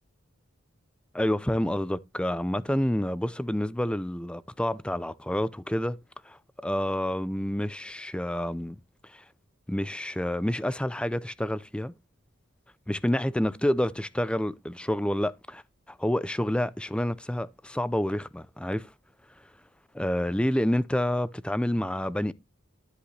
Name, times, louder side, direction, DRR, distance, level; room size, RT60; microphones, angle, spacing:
voice 1, 1.1-6.0 6.3-8.8 9.0-9.2 9.7-11.9 12.9-15.6 15.9-18.9 19.9-22.3, left 1 dB, 5° left, 0.5 m, -28 dB
13.0 x 8.1 x 3.3 m
head